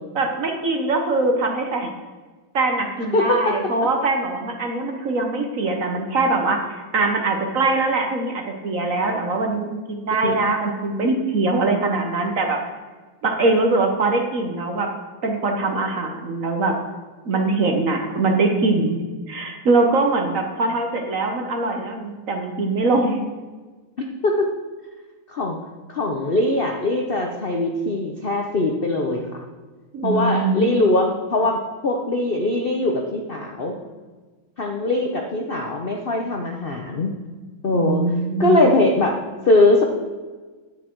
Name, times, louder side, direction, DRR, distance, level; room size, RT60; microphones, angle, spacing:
voice 1, 0.1-1.9 2.5-12.6 13.2-14.9 15.2-16.8 17.2-19.0 19.3-23.2 29.9-30.8 37.7-38.7, right 3 dB, 50° right, 3 dB, 1.2 m, -22 dB
voice 2, 3.1-3.5 10.2-10.6 24.2-24.4 25.3-25.6 25.9-29.3 30.0-33.7 34.6-37.1 37.6-38.0 38.4-39.2 39.5-39.8, left 2 dB, 65° left, 2 dB, 0.5 m, -21 dB
10.5 x 8.6 x 4.5 m, 1.3 s
omnidirectional pair, 2.3 m